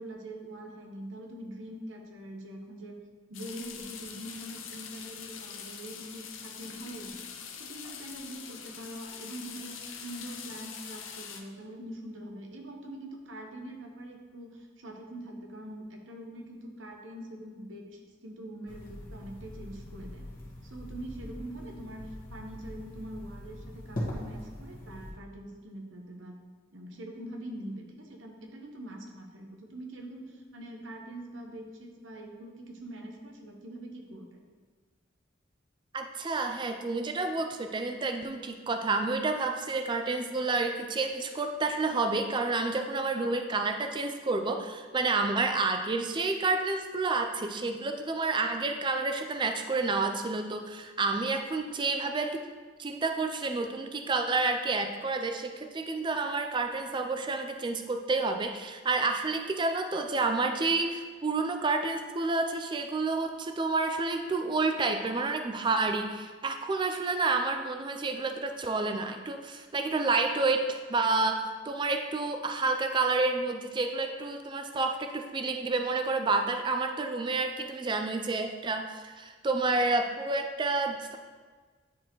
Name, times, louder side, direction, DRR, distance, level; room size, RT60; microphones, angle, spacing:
voice 1, 0.0-3.0 3.3-7.2 7.6-20.2 20.6-26.4 26.7-34.4, right 1 dB, 80° right, 1 dB, 1.0 m, -43 dB
sound 1, 3.3-11.4, left 7 dB, 85° left, 0.7 m, -44 dB
sound 2, 18.7-25.1, equal, 45° left, 1.5 m, -41 dB
voice 2, 35.9-52.4 52.8-81.2, right 3 dB, 25° right, 5 dB, 0.4 m, -29 dB
9.7 x 4.2 x 3.0 m, 1.5 s
head